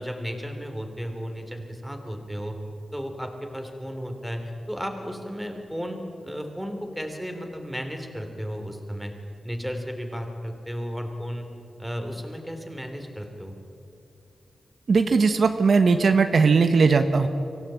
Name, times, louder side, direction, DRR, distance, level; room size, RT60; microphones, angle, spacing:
voice 1, 0.0-2.6 2.9-9.1 9.4-11.5 11.8-13.5, equal, ahead, 4 dB, 3.3 m, -34 dB
voice 2, 14.9-17.3, right 4 dB, 60° right, 8 dB, 1.1 m, -19 dB
24.5 x 16.0 x 8.8 m, 2.6 s
wide cardioid pair, 95°, 0 cm